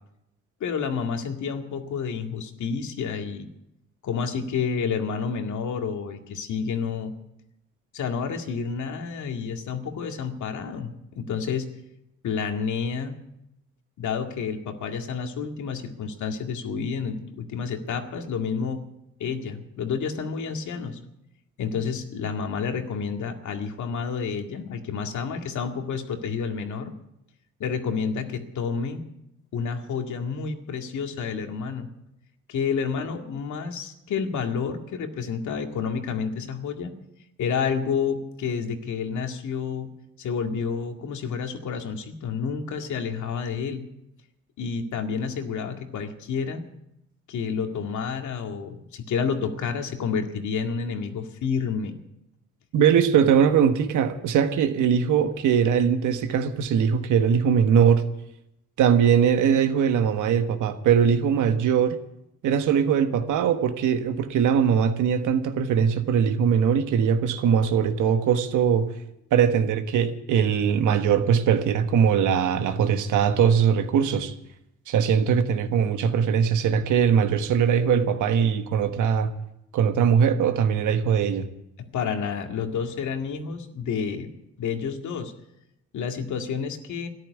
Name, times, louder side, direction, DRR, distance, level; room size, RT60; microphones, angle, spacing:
voice 1, 0.6-3.5 4.0-7.1 7.9-11.7 12.2-13.2 14.0-18.8 19.2-21.0 21.6-26.9 27.6-29.0 29.5-31.9 32.5-36.9 37.4-39.9 40.2-43.8 44.6-46.6 47.3-52.0 81.8-84.3 84.6-85.3 85.9-87.1, left 6 dB, 75° left, 2.1 m, -29 dB
voice 2, 52.7-58.0 58.8-62.0 62.4-68.9 69.3-74.3 74.9-79.3 79.7-81.5, right 7 dB, 80° right, 1.4 m, -21 dB
13.5 x 11.0 x 9.4 m
cardioid pair, 90°, 30 cm